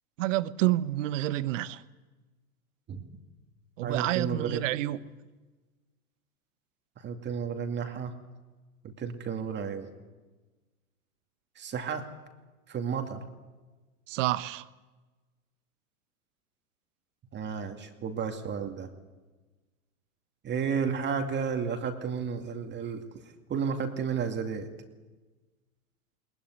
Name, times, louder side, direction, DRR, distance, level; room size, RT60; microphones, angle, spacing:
voice 1, 0.2-1.8 3.8-5.0 14.1-14.6, right 15 dB, 55° right, 1.2 m, -28 dB
voice 2, 3.8-4.6 7.0-8.1 8.8-9.9 11.6-12.1 12.7-13.2 17.3-18.9 20.4-23.0 23.5-24.7, right 6 dB, 25° right, 2.4 m, -32 dB
21.0 x 20.5 x 9.7 m
hypercardioid pair, 110°, 44 cm